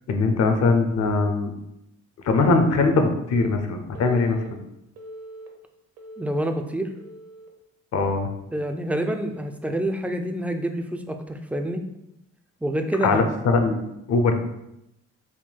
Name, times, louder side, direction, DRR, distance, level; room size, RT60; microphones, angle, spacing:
voice 1, 0.1-1.5 2.2-4.6 7.9-8.3 13.0-13.8 14.1-14.3, left 3 dB, 55° left, 6 dB, 0.7 m, -21 dB
Telephone, 3.3-3.5 3.9-4.5 5.0-5.5 6.0-6.5 7.0-7.5 8.0-8.3 9.3-9.5, right 1 dB, 55° right, 0.8 m, -42 dB
voice 2, 6.2-6.9 8.5-11.8 12.6-13.2, right 1 dB, 5° right, 5 dB, 0.3 m, -27 dB
3.7 x 2.3 x 4.4 m, 0.85 s
cardioid pair, 90°, 30 cm